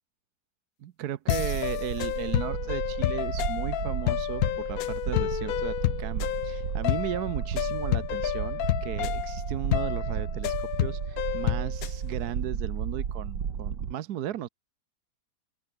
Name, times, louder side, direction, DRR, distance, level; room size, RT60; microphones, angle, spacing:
voice 1, 0.8-14.5, right 11 dB, 70° right, 1.3 m, -36 dB
sound 1, 1.3-12.0, left 14 dB, 70° left, 0.9 m, -30 dB
sound 2, 1.3-13.9, right 7 dB, 90° right, 2.4 m, -33 dB
open air
omnidirectional pair, 1.8 m